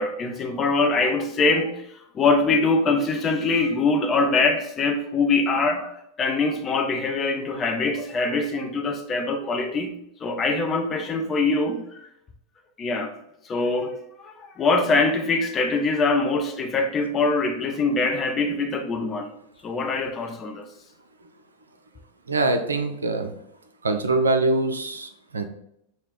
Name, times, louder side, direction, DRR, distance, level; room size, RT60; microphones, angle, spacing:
voice 1, 0.0-1.9 2.1-9.9 10.2-12.1 12.8-13.1 13.4-19.3 19.6-20.7, left 3 dB, 25° left, 5 dB, 0.7 m, -23 dB
voice 2, 22.3-23.3 23.8-25.4, right 2 dB, 75° right, 7 dB, 0.5 m, -23 dB
6.4 x 2.2 x 3.6 m, 0.78 s
figure-of-eight pair, 90°, 0 cm